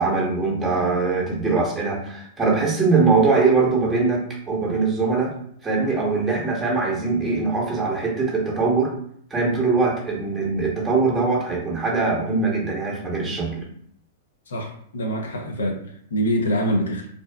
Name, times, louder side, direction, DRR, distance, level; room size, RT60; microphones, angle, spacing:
voice 1, 0.0-5.3 5.6-8.9 9.3-13.6, right 4 dB, 10° right, -3 dB, 0.8 m, -22 dB
voice 2, 14.5-17.1, equal, 85° left, 2 dB, 0.6 m, -25 dB
2.5 x 2.2 x 2.2 m, 0.64 s
hypercardioid pair, 125°, 0 cm